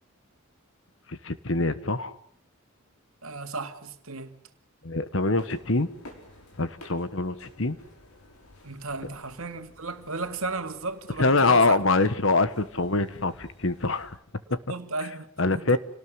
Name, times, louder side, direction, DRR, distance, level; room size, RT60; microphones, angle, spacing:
voice 1, 1.1-2.1 4.8-5.9 6.6-7.8 11.2-14.1 14.5-14.6 15.4-15.8, left 3 dB, 60° left, 1.4 m, -24 dB
voice 2, 3.2-4.5 8.6-11.8 14.7-15.8, right 3 dB, 70° right, 2.2 m, -35 dB
sound 1, 5.3-14.2, left 1 dB, 85° left, 5.7 m, -53 dB
28.5 x 19.0 x 8.0 m
head